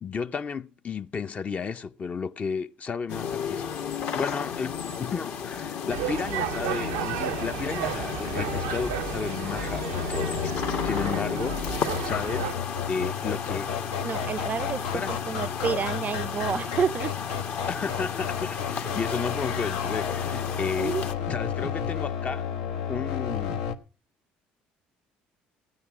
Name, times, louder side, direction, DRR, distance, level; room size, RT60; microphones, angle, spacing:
voice 1, 0.0-3.6 4.1-10.5 10.8-13.7 14.9-15.2 17.7-21.0 21.3-22.5 22.9-23.7, left 5 dB, 35° left, 0.6 m, -33 dB
sound 1, 3.1-21.1, left 7 dB, 65° left, 1.6 m, -33 dB
sound 2, 5.9-12.5, right 12 dB, 85° right, 0.5 m, -33 dB
sound 3, 8.4-23.8, left 7 dB, 80° left, 1.1 m, -33 dB
voice 2, 14.0-17.2 20.8-21.3, right 6 dB, 40° right, 0.5 m, -30 dB
15.5 x 9.6 x 4.9 m
supercardioid pair, 75°, 4 cm